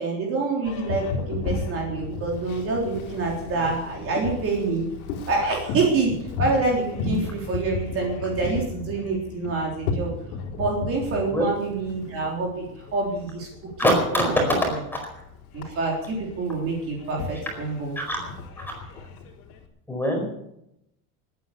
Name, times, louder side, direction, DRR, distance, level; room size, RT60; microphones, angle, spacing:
voice 1, 0.0-4.8 5.3-6.1 6.4-10.1 10.6-12.7 12.9-13.5 14.1-14.8 15.5-17.9, right 3 dB, 30° right, -1 dB, 3.7 m, -26 dB
Boat Water vehicle, 0.6-19.6, left 4 dB, 80° left, 3.9 m, -34 dB
voice 2, 13.8-15.0 18.0-18.2 18.6-18.7 19.9-20.2, equal, 5° left, 1 dB, 4.7 m, -23 dB
20.0 x 9.6 x 6.9 m, 0.81 s
supercardioid pair, 155°, 43 cm